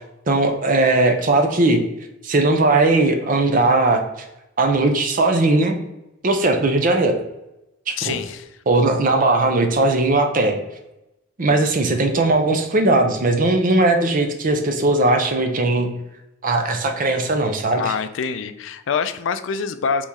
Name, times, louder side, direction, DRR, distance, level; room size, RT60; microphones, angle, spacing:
voice 1, 0.3-1.8 2.2-4.0 4.6-5.8 6.2-7.2 7.9-8.2 8.7-10.6 11.4-15.9 16.4-17.8, right 2 dB, 45° right, 5 dB, 0.6 m, -18 dB
voice 2, 8.0-8.5 17.7-20.1, left 6 dB, 70° left, 11 dB, 0.4 m, -25 dB
4.1 x 3.0 x 3.5 m, 0.92 s
head